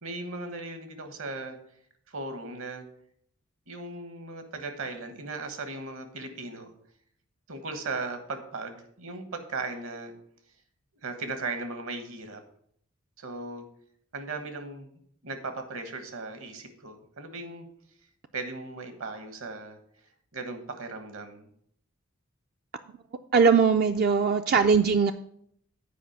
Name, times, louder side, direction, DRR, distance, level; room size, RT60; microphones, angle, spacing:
voice 1, 0.0-1.6 2.1-2.8 3.7-6.7 7.5-10.1 11.0-12.4 13.2-13.6 14.1-14.9 15.2-17.7 18.3-19.8 20.3-21.5, right 3 dB, 70° right, 1.3 m, -37 dB
voice 2, 23.3-25.1, right 5 dB, 45° right, 0.4 m, -20 dB
8.5 x 5.0 x 6.6 m
head